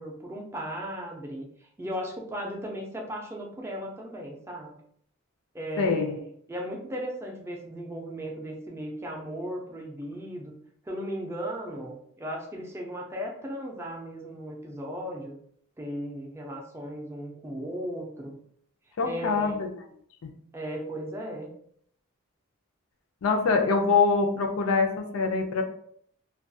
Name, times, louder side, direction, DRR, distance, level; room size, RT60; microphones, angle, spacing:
voice 1, 0.0-4.7 5.5-10.5 10.8-15.4 15.8-18.4 19.0-19.6 20.5-21.5, equal, 10° right, 0 dB, 0.4 m, -36 dB
voice 2, 5.8-6.2 19.0-19.7 23.2-25.6, left 4 dB, 85° left, 4 dB, 0.4 m, -24 dB
2.3 x 2.3 x 2.6 m, 0.64 s
head